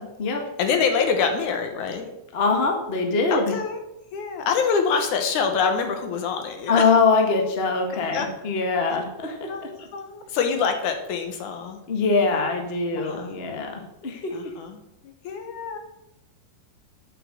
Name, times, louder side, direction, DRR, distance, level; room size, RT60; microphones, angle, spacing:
voice 1, 0.6-2.1 3.3-3.8 4.1-6.8 8.1-8.3 9.5-11.8 12.9-13.4 14.3-15.8, left 5 dB, 70° left, 6 dB, 2.4 m, -26 dB
voice 2, 2.3-3.5 6.7-9.5 11.9-14.3, left 4 dB, 35° left, 2 dB, 1.0 m, -23 dB
8.4 x 6.9 x 7.5 m, 0.87 s
omnidirectional pair, 3.8 m